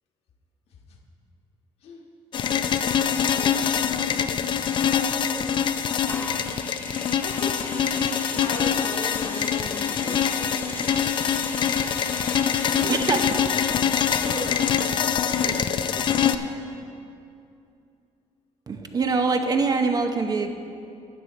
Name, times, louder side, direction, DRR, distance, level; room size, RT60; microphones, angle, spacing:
sound 1, 2.3-16.4, left 8 dB, 45° left, 0.5 m, -24 dB
voice 1, 3.2-3.7 4.5-5.5 6.8-10.7 11.6-13.5 14.0-16.4, left 3 dB, 65° left, 0 dB, 1.4 m, -37 dB
sound 2, 6.1-15.8 16.5-16.6, left 2 dB, 15° left, 0.8 m, -39 dB
voice 2, 12.9-13.2 18.7-20.5, right 4 dB, 35° right, 6 dB, 0.7 m, -23 dB
12.5 x 8.0 x 4.1 m, 2.5 s
cardioid pair, 105°, 11 cm